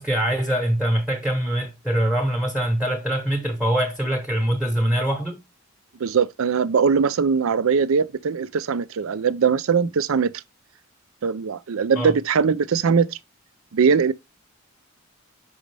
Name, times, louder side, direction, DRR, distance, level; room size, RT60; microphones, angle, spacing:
voice 1, 0.0-5.4 12.0-12.1, right 1 dB, ahead, 0.9 m, -23 dB
voice 2, 6.0-10.3 11.2-13.2 13.7-14.1, right 6 dB, 70° right, 0.4 m, -21 dB
6.2 x 5.1 x 3.3 m
head